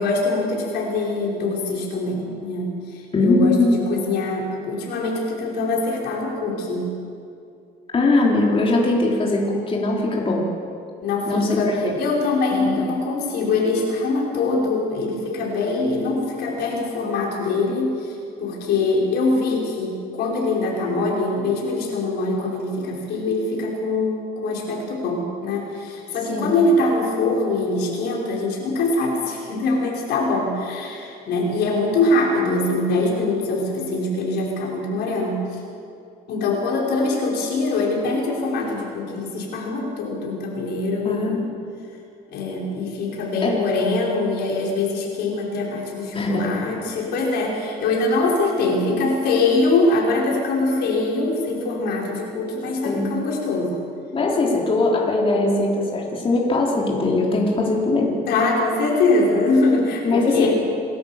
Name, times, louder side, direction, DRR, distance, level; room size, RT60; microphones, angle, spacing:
voice 1, 0.0-6.9 11.0-35.6 36.3-41.4 42.3-53.8 58.3-60.5, left 3 dB, 80° left, -2 dB, 5.2 m, -23 dB
voice 2, 3.1-3.8 7.9-10.5 11.3-11.8 12.6-12.7 26.3-26.5 41.0-41.5 43.4-43.6 46.1-46.5 52.8-53.2 54.1-58.2 60.0-60.5, left 2 dB, 35° left, -3 dB, 3.9 m, -20 dB
27.0 x 13.0 x 7.4 m, 2.5 s
cardioid pair, 110°, 17 cm